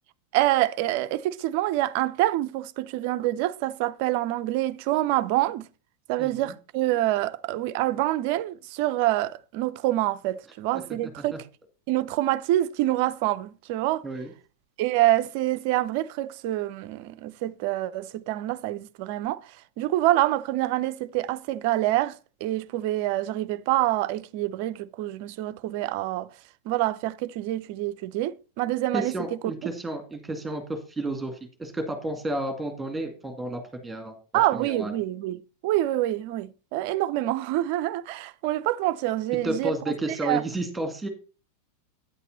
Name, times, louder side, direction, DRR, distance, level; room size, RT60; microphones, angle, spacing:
voice 1, 0.3-5.7 6.1-11.4 11.9-14.0 14.8-19.4 19.8-26.3 26.7-29.4 34.3-39.7 40.1-40.4, right 15 dB, 45° right, 0.5 m, -26 dB
voice 2, 6.2-6.5 11.0-11.4 14.0-14.3 28.9-34.1 34.5-34.9 39.4-41.1, right 1 dB, 5° right, 2.2 m, -31 dB
9.5 x 8.2 x 4.1 m
figure-of-eight pair, 90°, 0 cm